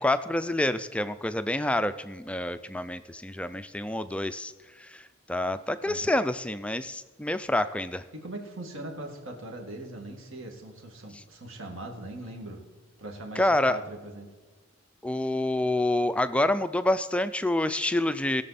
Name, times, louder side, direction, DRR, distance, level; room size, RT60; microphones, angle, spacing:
voice 1, 0.0-4.5 4.8-8.0 13.4-13.8 15.0-18.4, left 1 dB, 5° left, 12 dB, 0.3 m, -27 dB
voice 2, 8.1-12.6 13.0-14.3, right 1 dB, 70° right, 1 dB, 2.1 m, -40 dB
19.5 x 6.7 x 4.2 m, 1.3 s
head